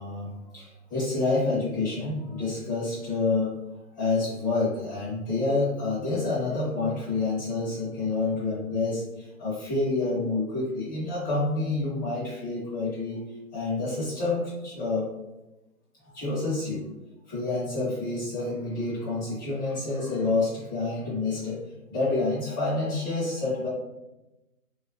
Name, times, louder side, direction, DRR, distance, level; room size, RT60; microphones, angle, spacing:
voice 1, 0.0-3.6 3.9-13.2 13.5-15.1 16.1-16.9 17.3-21.6 21.9-23.7, left 3 dB, 15° left, -9 dB, 0.7 m, -28 dB
3.0 x 2.5 x 2.2 m, 0.99 s
hypercardioid pair, 155°, 44 cm